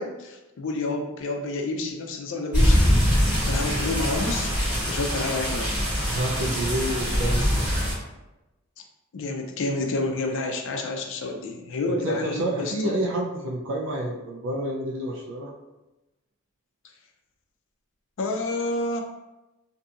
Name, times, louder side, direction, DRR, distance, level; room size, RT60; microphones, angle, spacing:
voice 1, 0.0-3.0 3.5-4.5 4.9-5.7 9.1-13.0 18.2-19.0, left 2 dB, 65° left, 3 dB, 0.4 m, -29 dB
sound 1, 2.5-7.9, equal, 10° right, 1.5 m, -23 dB
voice 2, 6.0-7.7 12.0-15.5, right 1 dB, 65° right, -2 dB, 0.4 m, -29 dB
2.7 x 2.6 x 2.3 m, 1.0 s
head